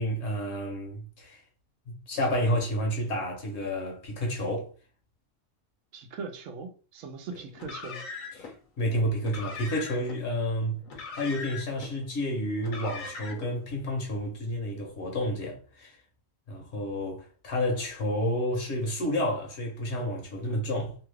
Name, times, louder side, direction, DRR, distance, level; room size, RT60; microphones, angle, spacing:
voice 1, 0.0-1.4 1.9-4.7 7.3-7.4 8.3-10.8 11.1-16.0 16.5-21.0, equal, 60° left, 1.2 m, -30 dB
voice 2, 5.9-8.0, right 4 dB, 75° right, 1.0 m, -40 dB
Car, 7.5-8.5 9.2-10.2 10.9-11.9 12.6-13.5, left 4 dB, 90° left, 1.2 m, -40 dB
2.9 x 2.3 x 3.2 m
omnidirectional pair, 1.3 m